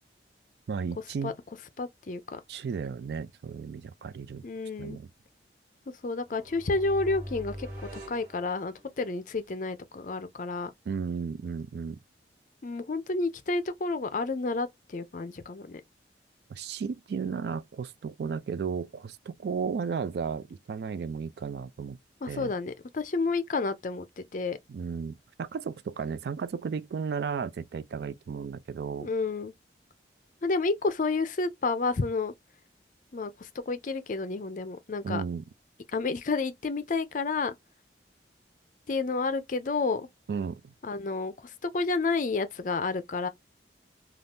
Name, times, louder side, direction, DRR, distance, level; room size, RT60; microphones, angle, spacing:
voice 1, 0.7-1.3 2.5-4.4 4.8-5.1 10.9-12.0 16.5-22.0 22.3-22.5 24.7-29.1 35.0-35.4 40.3-40.7, right 6 dB, 60° right, 0.3 m, -34 dB
voice 2, 1.8-2.4 4.4-5.0 6.0-7.7 7.9-10.7 12.6-15.8 22.2-24.6 29.0-29.5 30.4-32.3 33.1-35.2 35.9-37.5 38.9-40.1 40.8-43.3, left 3 dB, 45° left, 0.4 m, -30 dB
sound 1, 6.2-9.2, equal, 45° right, 1.5 m, -43 dB
2.6 x 2.4 x 3.4 m
head